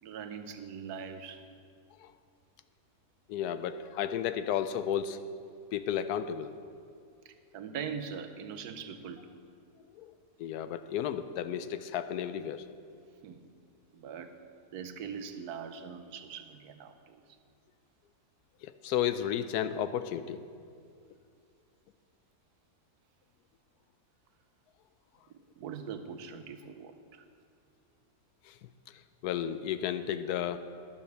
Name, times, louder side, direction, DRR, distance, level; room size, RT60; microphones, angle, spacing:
voice 1, 0.0-1.4 7.2-9.4 13.2-13.4 13.9-14.3 14.7-17.2 25.3-27.2, right 7 dB, 90° right, 9 dB, 1.3 m, -42 dB
voice 2, 3.3-5.2 5.7-6.5 9.9-10.1 10.4-12.6 18.6-20.4 28.5-28.6 29.2-30.6, left 9 dB, 90° left, 12 dB, 1.1 m, -33 dB
10.5 x 7.2 x 6.7 m, 2.4 s
omnidirectional pair, 1.6 m